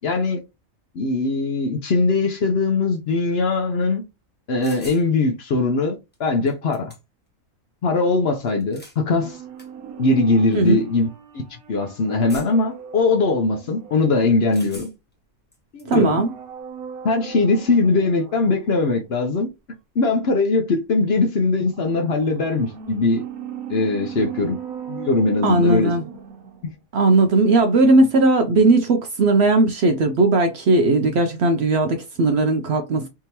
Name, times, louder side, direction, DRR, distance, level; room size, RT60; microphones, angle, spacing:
voice 1, 0.0-0.4 0.9-4.0 4.5-6.9 7.8-9.4 10.0-11.1 11.3-11.4 11.7-14.9 15.7-16.2 17.0-19.5 20.0-23.2 23.7-24.6 24.9-25.9 26.6-26.7, left 3 dB, 55° left, 0.8 m, -21 dB
sound 1, 4.6-5.1 6.1-6.2 6.5-7.3 8.5-9.0 9.6-9.7 10.5-10.7 12.3-12.7 14.5-15.1 15.5-16.0, left 1 dB, 10° left, 0.9 m, -43 dB
sound 2, 9.0-14.8 15.8-18.9 21.6-26.8 27.1-27.2, right 8 dB, 85° right, 1.2 m, -38 dB
voice 2, 15.9-16.3 25.4-26.0 26.9-33.1, right 2 dB, 65° right, 0.7 m, -17 dB
3.5 x 2.8 x 2.8 m
omnidirectional pair, 1.5 m